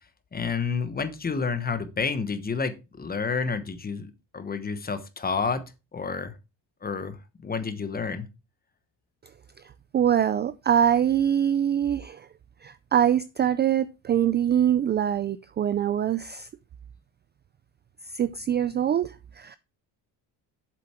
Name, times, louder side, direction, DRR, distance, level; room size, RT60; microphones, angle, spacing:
voice 1, 0.3-5.7 5.9-6.3 6.8-8.3, left 5 dB, 20° left, 1.1 m, -30 dB
voice 2, 9.9-12.3 12.6-16.5 18.1-19.6, right 9 dB, 25° right, 0.3 m, -24 dB
7.8 x 7.1 x 4.3 m
cardioid pair, 130°, 43 cm